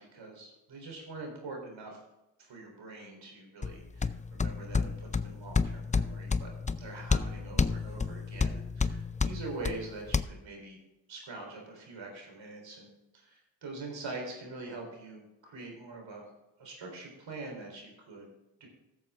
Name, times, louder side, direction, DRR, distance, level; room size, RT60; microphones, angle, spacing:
voice 1, 0.0-2.0 2.4-10.8 11.1-16.3 16.6-18.3 18.6-18.7, right 3 dB, 70° right, 1 dB, 4.0 m, -44 dB
sound 1, 3.6-10.2, left 4 dB, 15° left, 0.4 m, -31 dB
14.5 x 7.0 x 3.7 m, 0.93 s
supercardioid pair, 50°, 46 cm